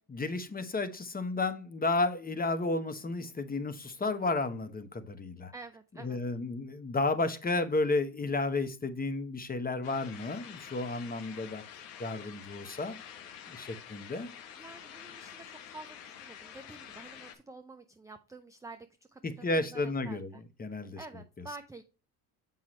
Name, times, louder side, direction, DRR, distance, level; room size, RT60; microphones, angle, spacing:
voice 1, 0.1-5.5 6.0-11.6 12.0-13.0 13.5-14.3 19.2-21.0, left 3 dB, 20° left, 1.0 m, -32 dB
voice 2, 5.5-6.2 13.8-14.0 14.6-20.4 21.0-21.8, right 3 dB, 5° right, 0.5 m, -49 dB
sound 1, 9.8-17.3, left 9 dB, 75° left, 1.3 m, -48 dB
7.3 x 5.6 x 3.1 m
hypercardioid pair, 75°, 48 cm